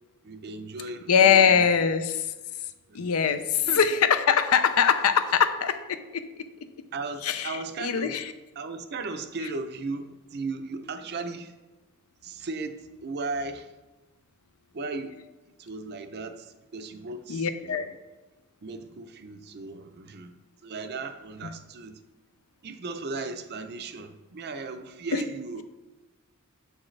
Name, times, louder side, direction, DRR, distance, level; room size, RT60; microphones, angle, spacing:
voice 1, 0.2-1.9 2.9-3.0 3.7-4.0 6.9-8.2 8.6-11.5 12.2-13.7 14.7-15.2 15.5-18.0 18.6-20.3 20.6-22.0 22.6-25.6, right 3 dB, 50° right, 8 dB, 0.5 m, -36 dB
voice 2, 1.1-2.3 2.9-6.3 7.2-8.3 17.3-17.9 25.1-25.2, left 7 dB, 85° left, 10 dB, 0.5 m, -22 dB
7.5 x 6.3 x 3.2 m, 1.1 s
head